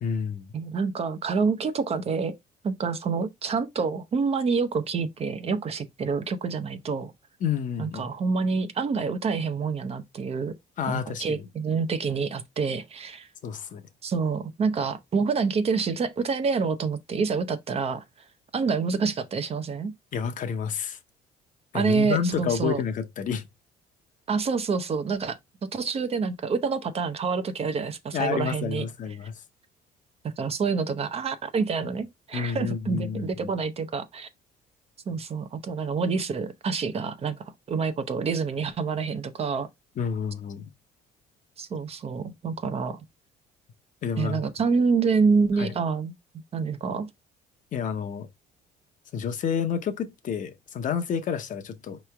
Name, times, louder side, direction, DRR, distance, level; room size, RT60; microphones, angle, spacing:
voice 1, 0.0-0.5 7.4-8.1 10.8-11.5 13.4-13.8 20.1-21.0 21.7-23.5 28.1-29.3 32.3-33.5 40.0-40.7 44.0-44.4 45.6-45.7 47.7-48.3 49.1-52.0, left 7 dB, 50° left, 0.7 m, -29 dB
voice 2, 0.5-2.3 2.6-7.1 7.8-10.5 10.9-13.3 14.0-18.0 18.5-19.9 21.7-22.8 24.3-28.8 30.4-34.3 35.1-39.7 41.6-43.0 44.2-46.1 46.5-47.1, right 5 dB, 35° right, 0.6 m, -27 dB
4.7 x 3.1 x 3.3 m
cardioid pair, 110°, 17 cm